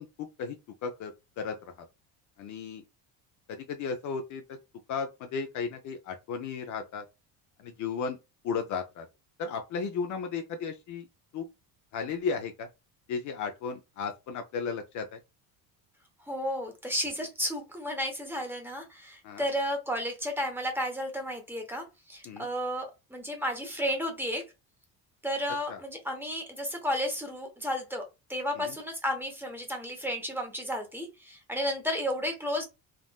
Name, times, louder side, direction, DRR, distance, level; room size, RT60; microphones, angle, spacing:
voice 1, 0.0-1.9 2.4-2.8 3.5-4.4 4.9-7.0 7.6-8.2 8.4-9.1 9.4-11.1 11.3-11.5 11.9-12.7 13.1-15.2 19.2-19.5 22.2-22.5 25.7-25.8 28.5-28.8, left 5 dB, 45° left, 0.5 m, -35 dB
voice 2, 16.3-24.4 25.2-28.0 28.3-32.6, equal, 5° right, 0.9 m, -32 dB
3.6 x 2.4 x 2.2 m
cardioid pair, 135°, 42 cm